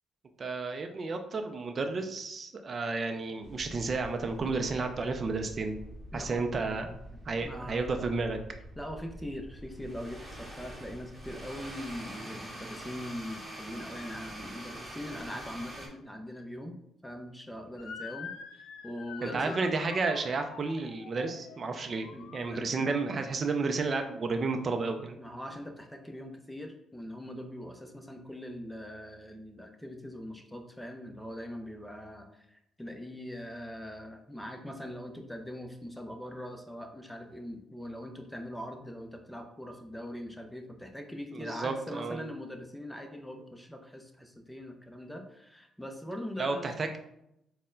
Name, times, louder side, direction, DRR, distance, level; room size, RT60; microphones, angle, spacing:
voice 1, 0.4-5.8 6.1-6.9 7.3-8.4 19.2-22.1 22.3-25.2 41.3-42.2 46.4-47.0, right 3 dB, 40° right, 6 dB, 0.5 m, -32 dB
sound 1, 3.4-15.9, right 1 dB, 20° right, 1.0 m, -45 dB
voice 2, 6.1-6.4 6.7-8.1 8.8-19.6 22.1-22.6 25.2-46.7, equal, 5° left, 4 dB, 0.6 m, -42 dB
Motor vehicle (road) / Siren, 17.8-23.0, left 6 dB, 90° left, 0.4 m, -46 dB
4.2 x 2.2 x 3.7 m, 0.81 s
cardioid pair, 90°, 0 cm